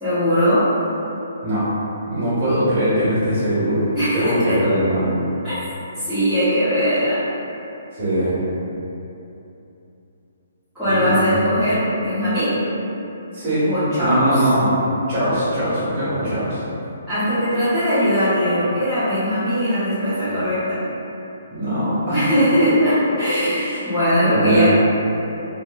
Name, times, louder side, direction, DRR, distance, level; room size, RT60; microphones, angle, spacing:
voice 1, 0.0-0.7 3.9-4.6 5.4-5.5 6.0-7.2 10.7-12.6 13.6-14.4 17.1-20.8 22.1-24.7, equal, 5° right, -20 dB, 0.9 m, -20 dB
voice 2, 2.0-5.2 7.9-8.4 10.8-11.5 13.3-14.7 15.1-16.6 21.5-22.7 23.5-23.8 24.3-24.7, right 1 dB, 30° right, -13 dB, 1.4 m, -21 dB
2.5 x 2.5 x 2.3 m, 2.9 s
hypercardioid pair, 155°, 0 cm